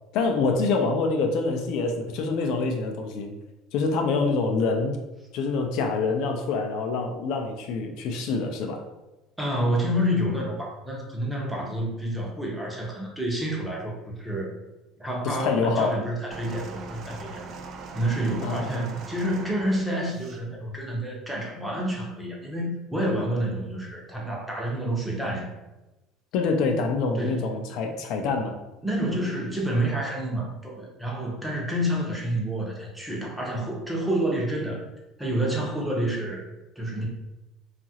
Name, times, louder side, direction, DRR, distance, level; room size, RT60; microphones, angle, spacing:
voice 1, 0.1-3.3 3.7-5.0 5.3-8.8 15.2-16.0 18.4-18.8 26.3-28.6, left 4 dB, 65° left, 4 dB, 0.4 m, -26 dB
voice 2, 9.4-13.9 14.2-14.5 15.0-17.4 17.9-25.5 27.1-27.5 28.8-34.8 35.2-36.5 36.8-37.1, right 1 dB, 5° right, -2 dB, 0.7 m, -28 dB
sound 1, 16.3-20.4 21.3-21.4, right 4 dB, 45° right, 0.4 m, -41 dB
2.8 x 2.4 x 2.8 m, 1.0 s
cardioid pair, 125°, 0 cm